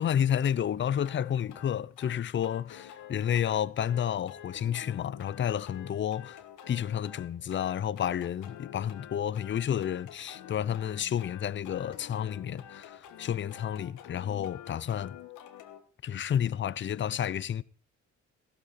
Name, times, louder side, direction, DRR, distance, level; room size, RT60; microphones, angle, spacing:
voice 1, 0.0-6.4 6.7-15.2 16.0-17.6, left 9 dB, 40° left, 0.6 m, -31 dB
sound 1, 1.0-15.8, left 10 dB, 90° left, 1.5 m, -48 dB
15.5 x 12.5 x 4.3 m
cardioid pair, 90°, 30 cm